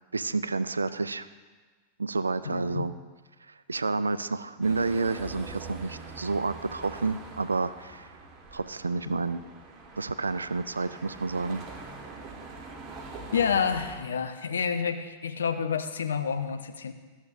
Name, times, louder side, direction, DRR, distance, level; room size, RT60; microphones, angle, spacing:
voice 1, 0.1-1.3 2.0-2.9 3.5-8.1 8.5-9.4 10.0-11.6, right 3 dB, 75° right, 14 dB, 0.3 m, -30 dB
voice 2, 2.4-2.8 9.1-9.2 13.3-16.9, left 6 dB, 70° left, 8 dB, 0.6 m, -29 dB
sound 1, 4.6-14.0, right 3 dB, 30° right, 1.3 m, -44 dB
Bass drum, 5.2-6.6, left 3 dB, 40° left, 2.8 m, -49 dB
13.5 x 7.1 x 2.5 m, 1.4 s
figure-of-eight pair, 90°, 0 cm